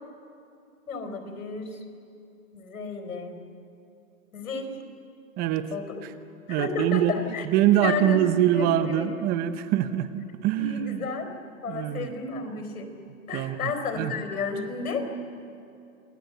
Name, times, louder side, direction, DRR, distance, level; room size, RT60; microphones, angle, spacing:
voice 1, 0.9-1.8 2.5-3.4 4.3-4.7 5.7-6.0 6.5-7.5 7.7-8.2 8.5-8.7 8.9-9.1 10.5-11.3 11.6-12.9 13.3-15.1, left 4 dB, 85° left, 6 dB, 4.3 m, -32 dB
voice 2, 5.4-5.7 6.0-6.1 6.5-7.1 7.4-11.1 11.7-12.1 13.3-14.1, right 11 dB, 20° right, 11 dB, 0.8 m, -24 dB
28.0 x 20.0 x 8.0 m, 2.6 s
hypercardioid pair, 140°, 42 cm